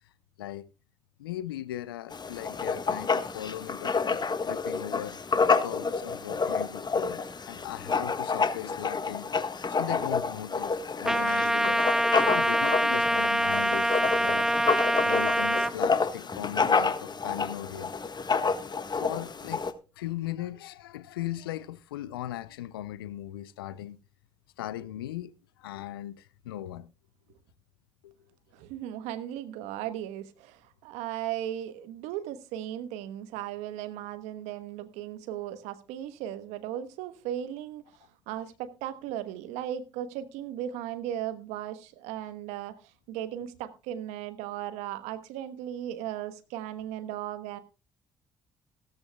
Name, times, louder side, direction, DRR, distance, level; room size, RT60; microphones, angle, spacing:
voice 1, 0.4-0.7 1.2-5.2 5.6-11.9 12.3-14.5 15.0-17.9 18.9-19.6 20.0-24.0 24.6-25.3 25.6-26.9 28.0-28.1, left 13 dB, 90° left, 0.5 m, -38 dB
Writing, 2.1-19.7, left 4 dB, 35° left, 1.5 m, -29 dB
Trumpet, 11.0-15.7, right 1 dB, 5° right, 0.9 m, -25 dB
voice 2, 28.5-47.6, right 11 dB, 75° right, 1.2 m, -37 dB
16.0 x 14.0 x 2.3 m
hypercardioid pair, 45°, 12 cm